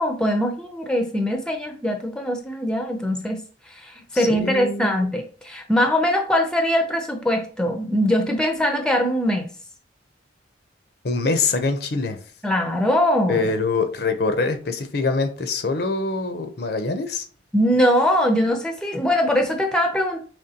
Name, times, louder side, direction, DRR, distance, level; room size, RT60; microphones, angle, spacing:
voice 1, 0.0-3.4 3.8-9.5 12.4-13.5 17.5-20.2, equal, 5° left, 0.6 m, -22 dB
voice 2, 4.1-5.0 11.0-12.2 13.3-17.2, left 3 dB, 60° left, 0.6 m, -24 dB
5.1 x 3.1 x 2.8 m
head